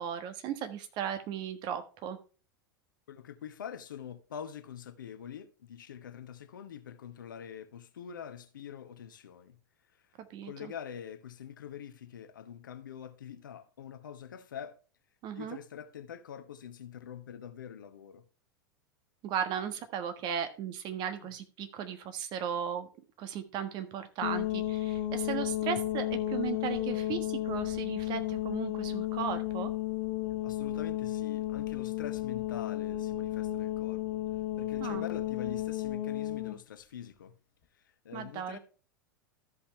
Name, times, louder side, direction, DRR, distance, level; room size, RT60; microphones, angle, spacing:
voice 1, 0.0-2.2 10.3-10.7 15.2-15.6 19.2-22.9 23.2-29.7 34.8-35.0 38.1-38.6, right 8 dB, 40° right, 1.4 m, -36 dB
voice 2, 3.1-9.6 10.4-14.8 15.4-18.2 21.2-21.3 30.4-34.2 34.6-37.3 38.0-38.6, left 8 dB, 70° left, 1.1 m, -45 dB
sound 1, 24.2-36.6, left 14 dB, 55° left, 1.5 m, -33 dB
13.5 x 5.6 x 3.2 m
figure-of-eight pair, 90°, 11 cm